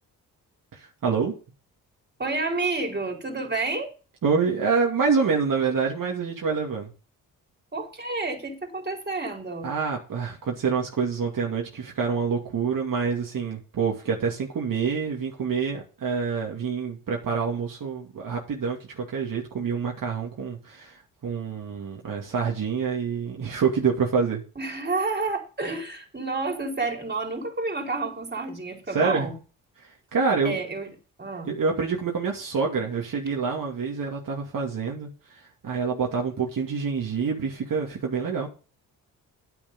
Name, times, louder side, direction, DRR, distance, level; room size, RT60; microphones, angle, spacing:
voice 1, 0.7-1.3 4.2-6.9 9.6-24.4 28.9-29.3 29.8-30.6 31.5-38.5, right 5 dB, 60° right, 2.5 m, -27 dB
voice 2, 2.2-3.9 7.7-9.7 24.6-29.3 30.4-30.9 31.2-31.5, right 3 dB, 25° right, 4.3 m, -29 dB
9.6 x 7.7 x 5.4 m
cardioid pair, 65°, 37 cm